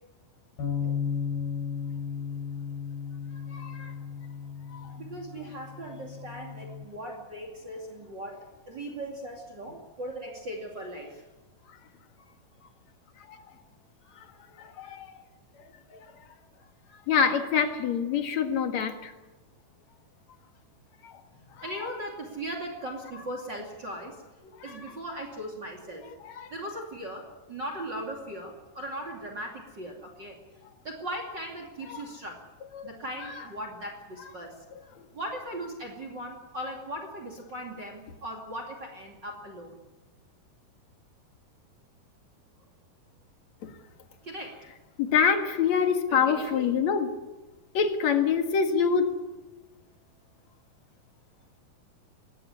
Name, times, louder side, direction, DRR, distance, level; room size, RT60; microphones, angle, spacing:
sound 1, 0.6-6.8, left 6 dB, 75° left, 6.5 m, -35 dB
voice 1, 3.5-3.9 4.7-4.9 13.3-13.4 14.6-15.1 15.9-16.1 17.1-19.1 21.0-21.2 24.7-24.8 26.2-26.5 31.9-32.0 32.7-32.8 45.0-47.1 47.7-49.1, left 6 dB, 55° left, 6 dB, 2.6 m, -26 dB
voice 2, 4.9-11.3 21.6-24.2 24.6-26.0 26.5-30.4 30.8-32.4 32.8-34.6 35.1-39.8 44.2-44.6 46.1-46.7, right 1 dB, 30° right, 4 dB, 2.6 m, -38 dB
21.5 x 16.5 x 9.8 m, 1.2 s
omnidirectional pair, 4.5 m